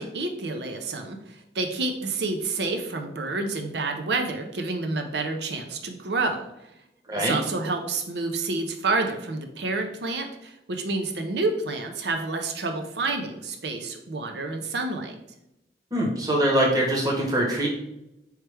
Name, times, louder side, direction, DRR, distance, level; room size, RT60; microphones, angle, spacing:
voice 1, 0.0-6.5 7.1-15.2, right 3 dB, 75° right, 5 dB, 0.6 m, -29 dB
voice 2, 15.9-17.7, right 1 dB, 20° right, -2 dB, 0.9 m, -23 dB
4.4 x 3.2 x 3.3 m, 0.89 s
head